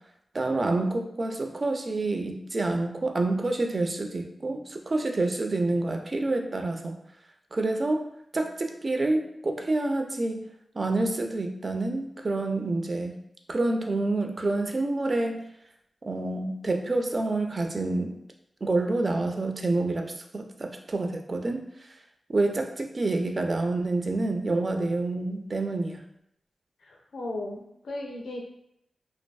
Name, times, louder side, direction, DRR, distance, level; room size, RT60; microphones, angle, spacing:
voice 1, 0.3-7.0 7.5-8.1 8.3-10.4 10.7-13.2 13.5-15.4 16.0-18.1 18.6-22.0 22.3-26.0, right 2 dB, 50° right, 4 dB, 0.3 m, -28 dB
voice 2, 26.8-28.4, left 2 dB, 90° left, 0 dB, 0.5 m, -36 dB
2.5 x 2.2 x 2.2 m, 0.75 s
cardioid pair, 50°, 0 cm